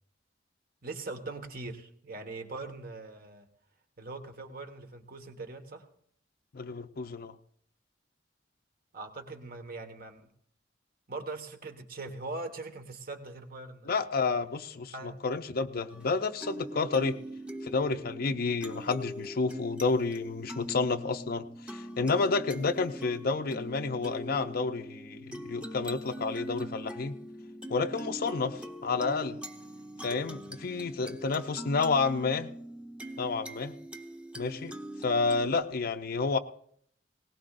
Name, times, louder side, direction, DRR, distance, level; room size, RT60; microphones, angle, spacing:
voice 1, 0.8-3.5 4.0-5.8 8.9-10.3 11.1-13.9 14.9-15.2, right 3 dB, 55° right, 6 dB, 1.5 m, -41 dB
voice 2, 6.5-7.4 13.9-17.2 17.6-27.1 27.7-29.4 30.0-32.5 33.2-33.7 34.4-34.7 35.0-36.4, left 4 dB, 55° left, 7 dB, 0.6 m, -30 dB
sound 1, 15.9-35.6, right 1 dB, 5° right, 0.9 m, -42 dB
20.0 x 18.5 x 2.5 m, 0.65 s
head